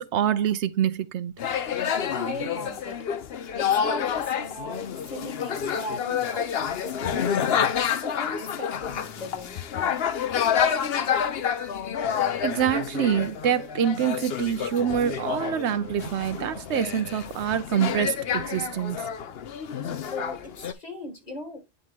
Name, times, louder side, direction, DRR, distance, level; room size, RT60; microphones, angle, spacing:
voice 1, 0.0-1.3 12.4-19.0, right 9 dB, 80° right, 0.9 m, -26 dB
sound 1, 1.4-20.7, left 8 dB, 65° left, 0.9 m, -28 dB
voice 2, 1.4-11.4 20.1-21.6, left 1 dB, 35° left, 2.0 m, -40 dB
10.0 x 3.6 x 3.6 m
omnidirectional pair, 1.2 m